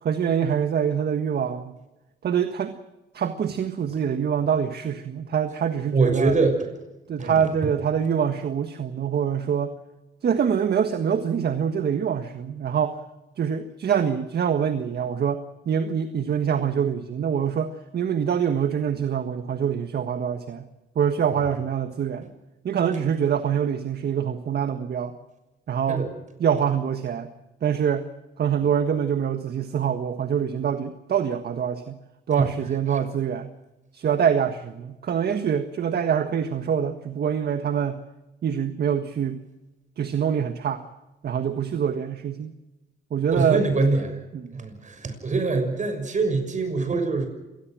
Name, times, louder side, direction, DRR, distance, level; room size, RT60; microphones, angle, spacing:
voice 1, 0.0-1.8 2.2-2.8 3.1-6.3 7.1-9.7 10.2-13.0 13.4-20.7 20.9-22.2 22.6-25.2 25.7-26.0 26.4-27.3 27.6-28.0 28.4-32.0 32.3-33.5 33.9-38.0 38.4-39.4 40.0-40.8 41.2-42.5 43.1-43.7 44.3-44.5, right 8 dB, 55° right, 9 dB, 1.6 m, -25 dB
voice 2, 5.9-6.7 7.2-7.4 25.9-26.1 32.3-32.4 43.3-44.2 44.5-47.3, right 3 dB, 40° right, 7 dB, 6.4 m, -23 dB
27.0 x 19.5 x 6.3 m, 1.1 s
cardioid pair, 90°, 20 cm